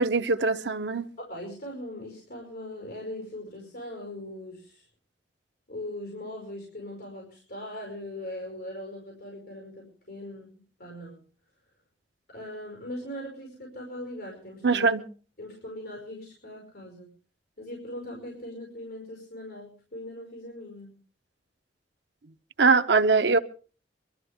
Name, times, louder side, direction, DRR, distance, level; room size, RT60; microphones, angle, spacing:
voice 1, 0.0-1.1 14.6-15.0 22.6-23.4, right 4 dB, 75° right, 0.8 m, -22 dB
voice 2, 1.2-4.9 5.7-11.2 12.3-14.9 15.4-17.1 17.6-21.0, left 1 dB, 60° left, 5.3 m, -40 dB
23.5 x 13.0 x 3.5 m
head